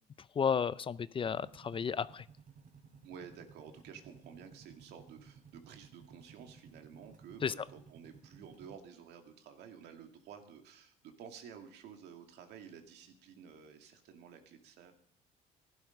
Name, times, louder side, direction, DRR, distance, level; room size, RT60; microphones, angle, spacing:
voice 1, 0.2-2.3 7.4-7.5, left 7 dB, 30° left, 18 dB, 0.5 m, -33 dB
sound 1, 1.2-8.8, right 6 dB, 50° right, 3.6 m, -58 dB
voice 2, 3.0-14.9, right 7 dB, 80° right, 6 dB, 2.3 m, -52 dB
15.5 x 11.5 x 5.3 m, 0.64 s
cardioid pair, 110°, 17 cm